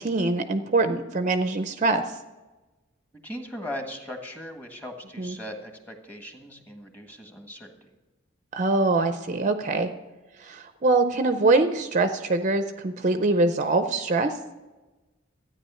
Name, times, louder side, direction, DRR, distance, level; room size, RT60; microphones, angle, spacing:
voice 1, 0.0-2.0 5.2-5.3 8.5-9.9 10.4-14.3, right 3 dB, 40° right, 8 dB, 0.6 m, -23 dB
voice 2, 3.2-7.9, left 1 dB, 10° left, 4 dB, 1.5 m, -39 dB
13.5 x 9.6 x 5.6 m, 1.1 s
head